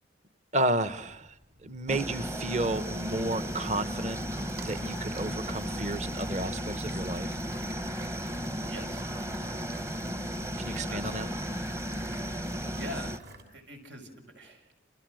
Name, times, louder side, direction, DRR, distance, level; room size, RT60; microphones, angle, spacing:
voice 1, 0.5-1.3 1.6-4.2 4.6-7.4 10.6-11.3, right 2 dB, 40° right, 13 dB, 1.2 m, -32 dB
sound 1, 0.9-13.4, right 1 dB, 60° right, 6.7 m, -48 dB
sound 2, 1.9-13.2, equal, 15° right, 0.9 m, -35 dB
voice 2, 8.6-9.1 10.9-11.5 12.7-13.2 13.5-14.8, equal, 85° right, 5 dB, 6.2 m, -44 dB
29.5 x 29.0 x 6.5 m, 0.88 s
head